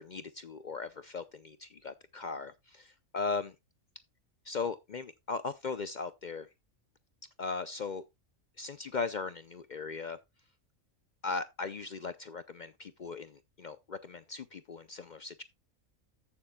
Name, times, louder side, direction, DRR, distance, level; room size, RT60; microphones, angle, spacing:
voice 1, 0.0-3.5 4.4-6.5 7.4-8.0 8.6-10.2 11.2-15.4, left 4 dB, 55° left, 0.5 m, -38 dB
14.5 x 6.9 x 2.2 m
omnidirectional pair, 1.4 m